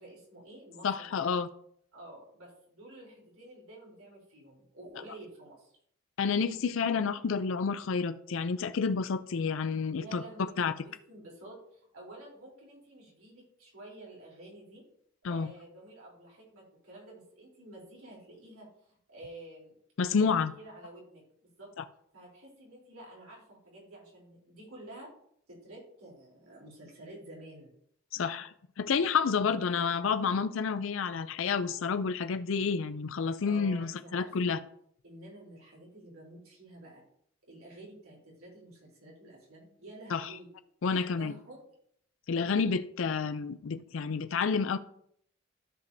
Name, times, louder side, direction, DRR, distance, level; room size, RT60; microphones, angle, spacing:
voice 1, 0.0-1.3 1.9-5.7 10.0-14.8 15.2-19.7 20.1-21.2 21.6-21.7 22.1-25.1 25.5-27.7 29.3-29.8 33.5-34.6 35.0-37.0 37.4-40.5 40.8-41.6, right 1 dB, 90° right, 3.6 m, -50 dB
voice 2, 0.8-1.5 6.2-10.2 10.6-10.7 15.2-15.5 20.0-20.5 28.1-28.5 28.8-34.6 40.1-40.3 40.8-41.3 42.3-44.8, left 5 dB, 65° left, 0.4 m, -29 dB
13.5 x 5.2 x 2.7 m
head